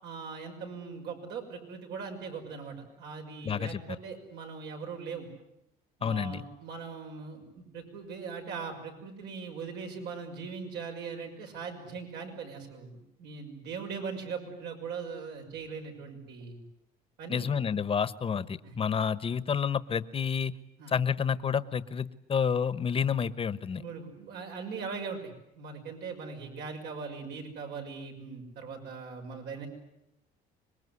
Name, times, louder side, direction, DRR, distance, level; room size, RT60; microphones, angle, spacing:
voice 1, 0.0-5.3 6.0-12.9 13.2-16.6 17.2-17.5 18.6-18.7 20.8-20.9 23.7-29.7, right 5 dB, 80° right, 3 dB, 6.0 m, -40 dB
voice 2, 3.4-3.8 6.0-6.4 17.3-20.5 20.9-23.8, left 7 dB, 35° left, 16 dB, 1.1 m, -29 dB
26.0 x 22.0 x 9.8 m, 0.81 s
cardioid pair, 110°, 17 cm